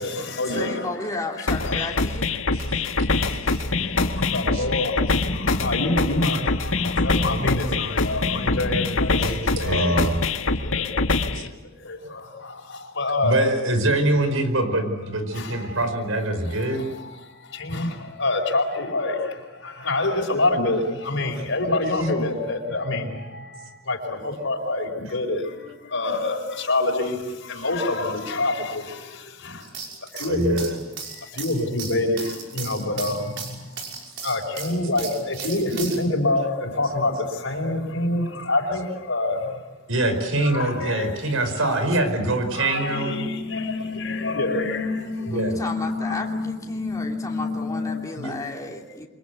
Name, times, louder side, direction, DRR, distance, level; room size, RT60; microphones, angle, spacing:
voice 1, 0.0-0.9 1.4-1.9 2.9-10.0 10.6-13.4 15.3-15.8 16.5-29.7 30.1-30.6 31.1-33.8 34.2-39.6 40.4-41.4 42.4-48.3 48.7-48.8, left 2 dB, 65° left, 0 dB, 4.5 m, -27 dB
voice 2, 0.5-2.4 45.3-49.1, left 2 dB, 15° left, 0 dB, 3.1 m, -33 dB
sound 1, 1.5-11.5, left 3 dB, 80° left, 1.7 m, -24 dB
voice 3, 2.5-2.8 3.1-3.7 4.0-4.2 4.5-4.6 9.2-10.3 11.3-11.5 13.2-16.9 30.2-30.8 35.4-35.5 35.8-35.9 39.9-43.3 45.3-45.6 48.2-48.3, right 1 dB, 80° right, 8 dB, 5.0 m, -24 dB
sound 2, 3.3-9.3, left 1 dB, 40° left, 1.2 m, -33 dB
sound 3, 29.6-36.0, right 5 dB, 60° right, 6.0 m, -36 dB
28.5 x 25.0 x 8.2 m, 1.1 s
head